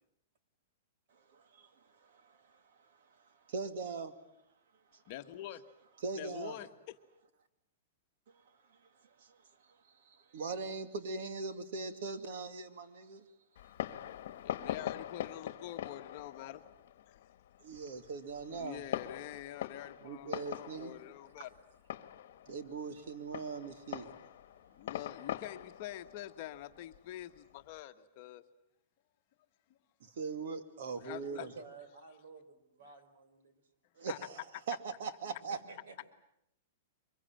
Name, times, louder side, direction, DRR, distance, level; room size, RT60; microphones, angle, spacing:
voice 1, 1.3-1.7 2.0-2.6 3.5-4.1 4.9-5.0 6.0-6.6 9.2-9.4 10.0-13.3 17.6-18.8 20.0-21.0 22.5-24.2 30.0-31.5 34.0-34.4 34.7-35.6, right 4 dB, 60° right, 2.3 m, -41 dB
voice 2, 5.1-5.6 6.2-6.7 14.4-16.7 17.1-17.2 18.5-21.5 24.7-28.4 29.7-29.8 31.0-31.5 34.0-34.2, left 13 dB, 40° left, 1.3 m, -46 dB
Fireworks, 13.6-27.7, left 11 dB, 60° left, 1.4 m, -43 dB
voice 3, 31.4-33.6 35.5-36.1, right 4 dB, 80° right, 4.2 m, -53 dB
24.0 x 22.0 x 8.9 m
supercardioid pair, 165°, 0 cm